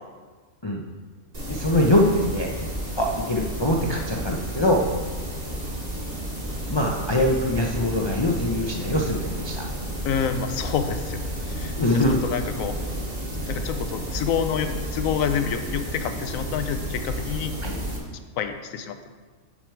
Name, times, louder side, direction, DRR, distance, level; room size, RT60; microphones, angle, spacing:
sound 1, 1.3-18.0, equal, 30° right, 1.6 m, -31 dB
voice 1, 1.5-2.5 3.0-4.8 6.7-9.7 11.7-12.2 17.6-17.8, left 1 dB, 35° left, -1 dB, 0.4 m, -23 dB
voice 2, 10.0-11.2 11.5-11.7 12.2-12.8 13.5-17.5 18.4-19.0, left 7 dB, 80° left, 8 dB, 1.0 m, -27 dB
9.4 x 4.7 x 4.6 m, 1.4 s
omnidirectional pair, 1.4 m